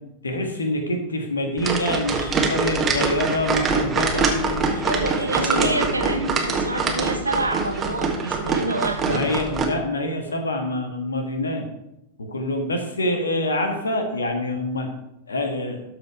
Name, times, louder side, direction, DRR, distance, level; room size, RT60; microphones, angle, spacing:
voice 1, 0.2-6.1 9.0-11.6 12.3-14.9 15.3-15.8, left 1 dB, 75° left, 5 dB, 1.6 m, -26 dB
sound 1, 1.6-9.6, right 4 dB, 20° right, 1.5 m, -24 dB
voice 2, 4.9-9.2, right 2 dB, 80° right, 7 dB, 0.9 m, -27 dB
12.5 x 5.2 x 4.7 m, 0.86 s
figure-of-eight pair, 90°, 0 cm